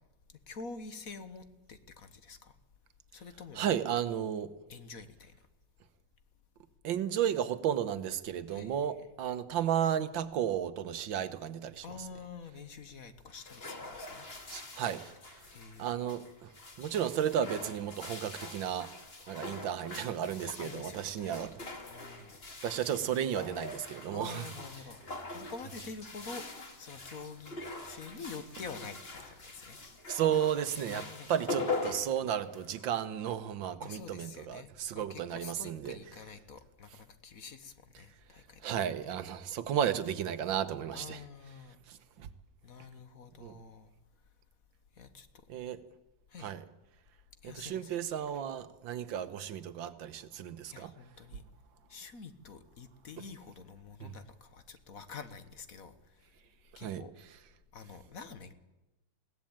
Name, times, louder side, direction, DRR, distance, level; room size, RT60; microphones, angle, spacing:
voice 1, 0.5-2.5 3.1-3.9 4.7-5.4 8.5-8.8 11.8-14.3 15.5-16.1 20.4-22.3 24.1-25.0 25.3-26.4 26.8-29.8 30.9-31.3 33.8-39.2 40.9-41.8 42.6-43.9 45.0-45.5 46.3-46.5 47.4-48.0 50.7-51.4 51.9-56.0 56.8-57.1 57.7-58.5, left 5 dB, 50° left, 11 dB, 1.6 m, -47 dB
voice 2, 3.6-4.5 6.8-11.8 14.5-15.1 15.8-16.5 16.8-18.9 19.3-21.5 22.6-24.5 30.1-31.0 31.3-36.0 38.6-41.2 41.9-42.3 43.4-43.5 45.5-45.8 46.4-46.6 47.4-50.9 54.0-54.1 56.8-57.0, right 9 dB, 85° right, 13 dB, 1.8 m, -33 dB
sound 1, 13.3-32.9, left 3 dB, 30° left, 2.5 m, -43 dB
21.5 x 17.0 x 8.8 m, 1.0 s
omnidirectional pair, 2.0 m